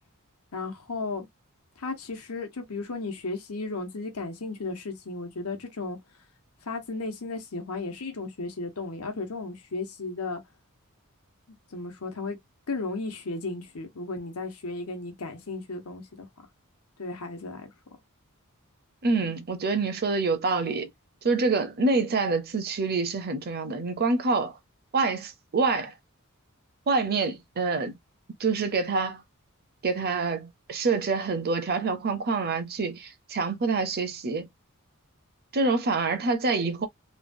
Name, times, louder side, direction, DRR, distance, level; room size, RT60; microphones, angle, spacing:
voice 1, 0.5-1.3 1.8-6.0 6.6-10.4 11.7-12.4 12.7-16.3 17.0-17.7, left 3 dB, 90° left, 1.0 m, -34 dB
voice 2, 19.0-20.9 21.2-24.6 24.9-25.9 26.9-27.9 28.4-29.2 29.8-34.5 35.5-36.9, right 4 dB, 45° right, 0.6 m, -26 dB
3.1 x 2.3 x 2.6 m
head